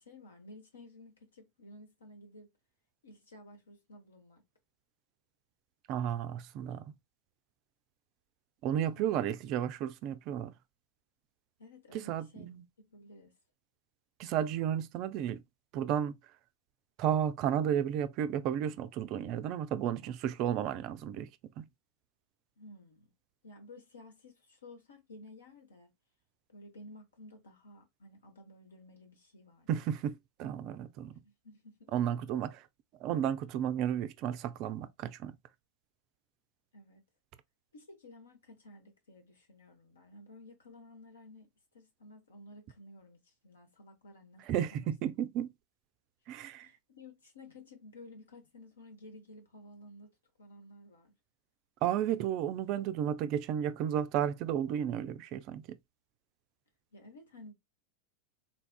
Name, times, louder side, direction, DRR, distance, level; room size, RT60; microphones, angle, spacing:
voice 1, 0.0-2.5 3.0-4.4 9.0-9.2 11.6-12.5 12.8-13.3 22.6-23.1 23.4-25.9 26.5-29.9 31.2-31.9 36.7-37.0 37.7-44.4 44.7-44.9 46.6-51.1 56.9-57.5, left 1 dB, 70° left, 1.0 m, -54 dB
voice 2, 5.9-6.9 8.6-10.5 11.9-12.6 14.2-15.4 15.7-16.1 17.0-21.3 21.6-21.7 29.7-31.1 31.9-32.6 33.0-35.3 44.5-45.5 46.3-46.7 51.8-55.8, right 10 dB, 40° right, 0.3 m, -33 dB
3.9 x 2.4 x 2.2 m
figure-of-eight pair, 90°, 0 cm